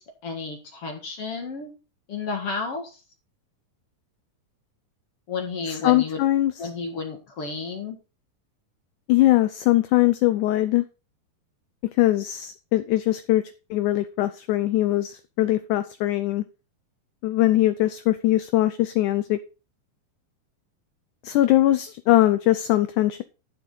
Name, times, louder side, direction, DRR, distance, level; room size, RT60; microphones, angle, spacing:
voice 1, 0.0-1.8 2.1-3.0 5.3-6.2 6.6-8.0, left 4 dB, 50° left, 4 dB, 2.3 m, -32 dB
voice 2, 5.7-6.7 9.1-10.9 12.0-16.4 17.2-19.4 21.2-23.2, left 15 dB, 80° left, 13 dB, 1.8 m, -21 dB
11.5 x 7.5 x 3.9 m, 0.31 s
omnidirectional pair, 4.1 m